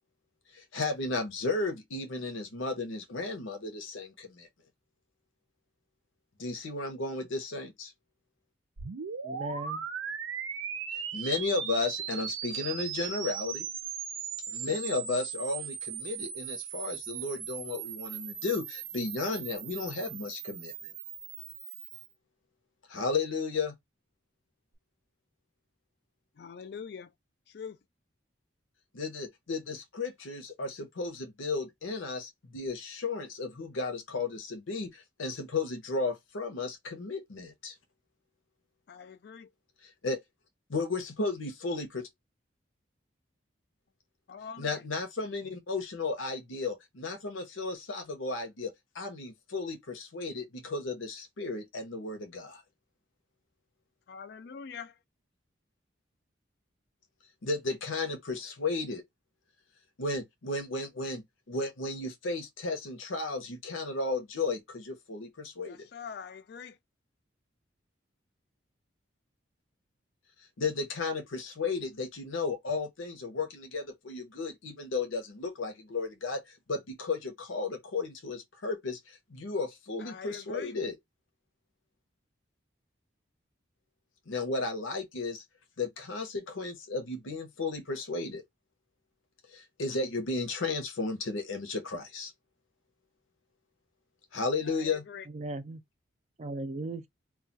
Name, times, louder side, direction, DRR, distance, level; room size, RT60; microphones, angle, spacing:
voice 1, 0.5-4.5 6.4-7.9 11.1-13.7 14.5-20.7 22.9-23.8 28.9-37.7 40.0-40.2 40.7-42.0 44.6-52.6 57.4-59.0 60.0-65.9 70.6-76.4 76.7-81.0 84.3-85.4 85.8-88.4 89.5-92.3 94.3-95.0, left 3 dB, 85° left, 0.7 m, -34 dB
sound 1, 8.8-22.1, right 7 dB, 85° right, 0.6 m, -38 dB
voice 2, 9.2-9.9 95.3-95.8 96.4-97.1, right 2 dB, 35° right, 0.3 m, -37 dB
voice 3, 26.4-27.1 27.5-27.8 38.9-39.5 44.3-44.8 54.1-54.9 65.6-66.8 80.0-80.7 94.7-95.3, left 6 dB, 55° left, 0.3 m, -44 dB
2.3 x 2.3 x 3.9 m
head